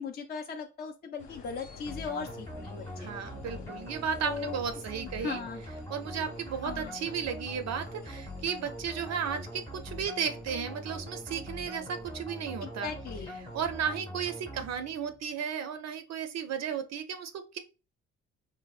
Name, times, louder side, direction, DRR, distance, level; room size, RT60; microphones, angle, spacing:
voice 1, 0.0-3.1 4.2-4.6 5.2-5.6 6.6-7.0 12.6-13.4, left 5 dB, 35° left, 4 dB, 0.4 m, -38 dB
sound 1, 1.2-14.0, left 4 dB, 85° left, 1.0 m, -52 dB
sound 2, 1.9-15.2, equal, 10° left, 0.8 m, -42 dB
voice 2, 3.0-5.4 5.9-12.9 13.5-17.6, right 7 dB, 60° right, 8 dB, 0.4 m, -34 dB
3.3 x 2.0 x 2.3 m, 0.31 s
cardioid pair, 90°, 30 cm